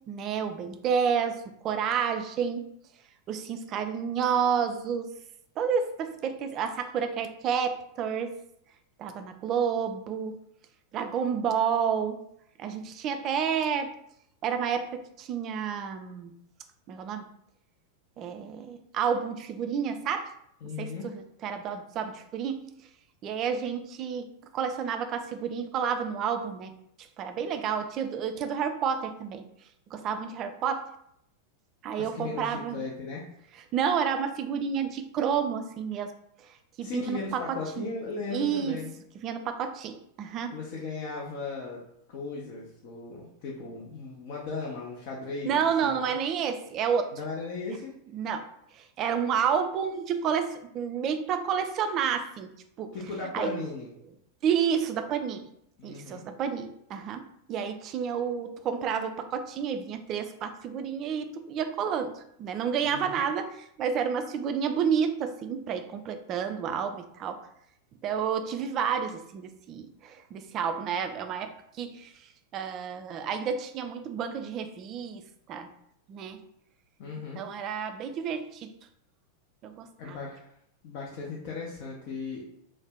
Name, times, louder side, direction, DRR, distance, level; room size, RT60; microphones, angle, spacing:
voice 1, 0.1-2.6 3.3-5.1 5.6-8.3 9.0-10.4 10.9-12.2 12.6-13.9 14.4-16.3 16.9-17.3 18.2-20.3 20.8-22.7 23.2-26.7 27.2-29.4 29.9-30.9 31.8-32.8 33.7-36.1 36.8-37.9 38.3-38.8 39.2-40.5 45.5-47.1 48.1-48.5 48.7-52.5 52.8-53.0 53.3-53.5 54.4-55.5 55.8-67.4 68.0-72.1 72.5-75.7 76.1-76.4 77.4-78.7 79.6-80.2, right 7 dB, 35° right, 8 dB, 0.3 m, -30 dB
voice 2, 20.6-21.1 32.0-33.2 36.8-38.9 40.5-41.8 42.1-46.0 47.1-47.9 52.9-53.9 55.8-56.3 62.8-63.2 77.0-77.4 80.0-80.5 80.8-82.6, left 4 dB, 45° left, -3 dB, 0.5 m, -37 dB
2.6 x 2.1 x 3.3 m, 0.73 s
figure-of-eight pair, 90°, 0 cm